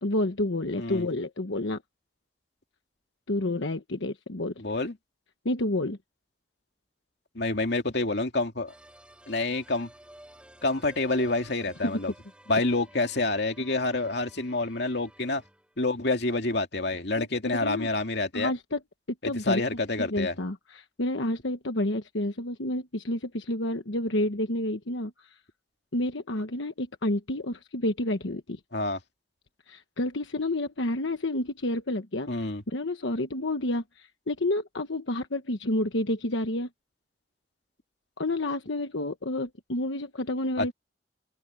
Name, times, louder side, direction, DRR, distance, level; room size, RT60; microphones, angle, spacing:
voice 1, 0.0-1.8 3.3-4.5 5.4-6.0 11.8-12.0 17.1-17.3 17.6-17.9 18.3-18.8 19.2-19.6 20.0-25.3 25.9-28.6 29.7-36.7 38.2-40.7, left 1 dB, 90° left, 1.3 m, -29 dB
voice 2, 4.6-4.9 7.3-8.7 9.3-9.9 10.6-12.1 12.5-15.4 15.8-18.5 19.2-20.4 28.7-29.0 32.3-32.6 40.6-40.7, left 2 dB, 65° left, 2.6 m, -28 dB
sound 1, 8.7-15.8, right 1 dB, 5° right, 4.0 m, -53 dB
open air
head